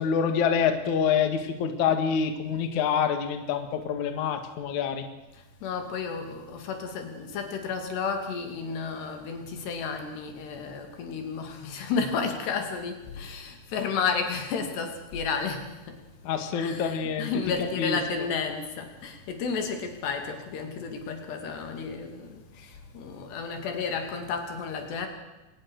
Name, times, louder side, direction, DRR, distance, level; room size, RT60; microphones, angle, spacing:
voice 1, 0.0-5.1 16.2-17.3 17.8-18.0, left 7 dB, 55° left, 7 dB, 2.9 m, -26 dB
voice 2, 5.3-16.0 16.5-25.1, left 5 dB, 90° left, 5 dB, 4.8 m, -32 dB
24.5 x 19.5 x 6.5 m, 1.1 s
omnidirectional pair, 4.7 m